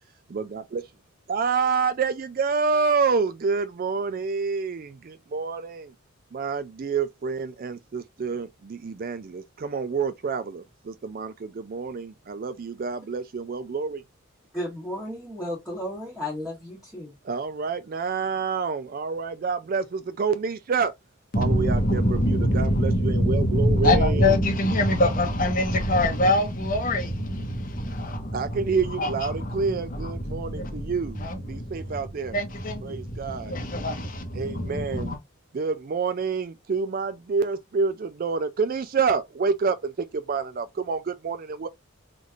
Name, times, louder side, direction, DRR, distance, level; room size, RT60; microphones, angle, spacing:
voice 1, 0.3-0.8 1.3-5.9 6.3-14.0 17.2-20.9 21.4-24.4 28.3-32.4 32.8-33.6 34.3-35.2 35.5-41.7, right 5 dB, 45° right, 0.4 m, -28 dB
voice 2, 14.5-17.1, left 1 dB, ahead, 1.4 m, -33 dB
voice 3, 21.3-28.6 29.0-30.9 31.2-31.8 32.3-35.2, left 1 dB, 40° left, 1.0 m, -24 dB
4.0 x 3.1 x 2.4 m
head